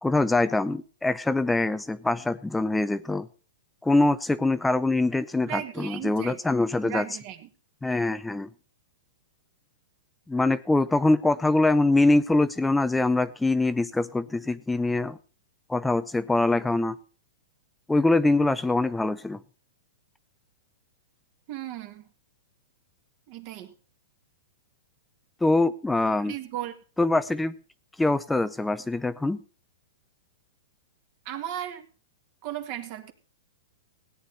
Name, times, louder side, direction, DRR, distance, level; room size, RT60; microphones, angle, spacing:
voice 1, 0.0-3.3 3.8-7.1 7.8-8.5 10.3-15.2 15.7-17.0 17.9-19.4 25.4-26.3 27.0-27.5 28.0-29.4, left 2 dB, 5° left, 15 dB, 0.5 m, -24 dB
voice 2, 5.4-7.5 21.5-22.1 23.3-23.7 26.3-26.7 31.3-31.9 32.4-33.1, right 12 dB, 45° right, 7 dB, 1.9 m, -36 dB
17.0 x 9.4 x 4.1 m, 0.37 s
hypercardioid pair, 145°, 0 cm